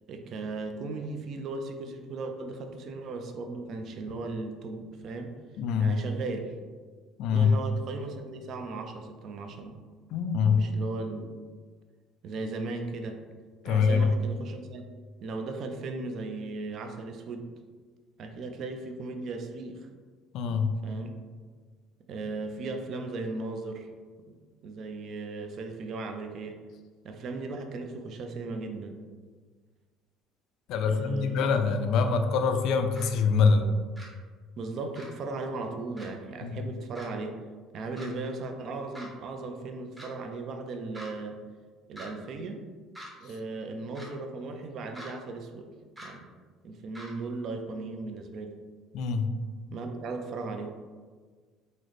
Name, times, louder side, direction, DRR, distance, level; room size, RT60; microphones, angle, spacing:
voice 1, 0.1-5.3 5.8-6.5 7.3-9.8 10.5-11.3 12.2-13.2 13.7-14.9 15.2-17.5 18.2-19.9 20.8-21.2 22.1-23.9 24.3-24.4 24.6-26.6 27.0-29.0 30.8-31.5 34.6-37.4 37.7-41.4 41.9-42.6 43.2-45.7 46.0-46.2 46.6-48.6 49.7-50.8, right 3 dB, 45° right, 5 dB, 0.3 m, -37 dB
voice 2, 5.6-5.9 7.2-7.5 10.1-10.6 13.6-14.1 20.3-20.7 30.7-33.7 36.4-36.6 48.9-49.3, left 5 dB, 60° left, 7 dB, 0.3 m, -24 dB
sound 1, 33.0-33.1 34.0-34.1 35.0-35.1 36.0-36.1 36.9-37.1 38.0-38.1 38.9-39.1 40.0-40.1 40.9-41.1 42.0-42.1 42.9-43.1 43.9-44.1 44.9-45.1 46.0-46.1 46.9-47.1, equal, 10° right, 0.7 m, -44 dB
3.9 x 2.0 x 3.1 m, 1.5 s
cardioid pair, 140°, 0 cm